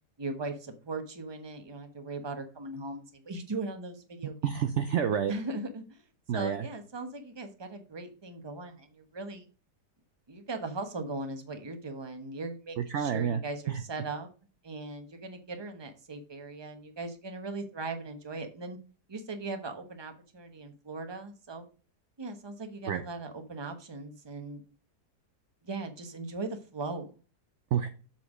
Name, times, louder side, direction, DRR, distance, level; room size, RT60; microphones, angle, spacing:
voice 1, 0.2-4.3 5.3-6.0 6.3-9.5 10.3-14.3 14.6-18.8 19.1-21.6 22.2-24.6 25.6-27.1, right 3 dB, 20° right, 6 dB, 0.8 m, -39 dB
voice 2, 4.4-5.3 6.3-6.7 12.8-13.4 13.7-13.8 22.9-23.0 27.7-27.9, right 8 dB, 70° right, 9 dB, 0.7 m, -28 dB
7.2 x 4.4 x 4.9 m, 0.36 s
omnidirectional pair, 1.8 m